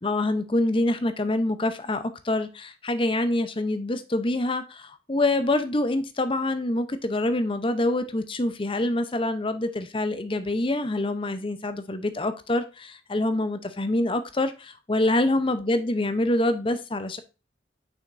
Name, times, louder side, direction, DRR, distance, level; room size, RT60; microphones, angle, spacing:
voice 1, 0.0-17.2, left 1 dB, 30° left, 0.7 m, -26 dB
7.0 x 5.8 x 2.6 m
head